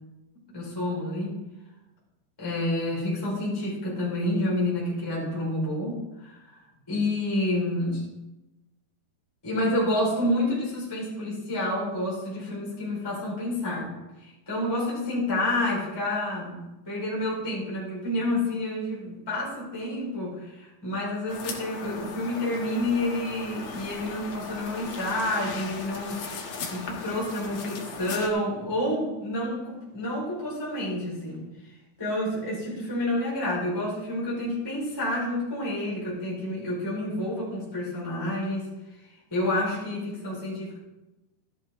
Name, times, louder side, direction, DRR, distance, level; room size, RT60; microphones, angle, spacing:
voice 1, 0.5-1.4 2.4-6.4 6.9-8.1 9.4-13.9 14.2-26.2 26.7-31.4 32.0-38.7 39.3-40.8, left 1 dB, 5° left, -6 dB, 3.9 m, -29 dB
sound 1, 21.3-28.3, left 4 dB, 60° left, 1.7 m, -38 dB
13.5 x 11.0 x 3.6 m, 1.0 s
omnidirectional pair, 4.9 m